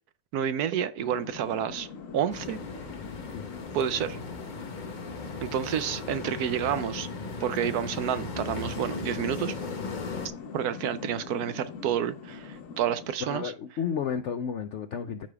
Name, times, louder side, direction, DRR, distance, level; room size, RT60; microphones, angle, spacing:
voice 1, 0.3-1.9 2.1-2.6 3.7-4.2 5.4-7.1 7.4-9.5 10.5-13.5, right 9 dB, 70° right, 1.0 m, -29 dB
sound 1, 1.0-13.1, left 5 dB, 55° left, 1.2 m, -43 dB
sound 2, 2.3-10.3, left 3 dB, 40° left, 0.7 m, -37 dB
voice 2, 13.2-15.3, left 7 dB, 75° left, 0.6 m, -32 dB
14.5 x 4.9 x 2.4 m
omnidirectional pair, 1.8 m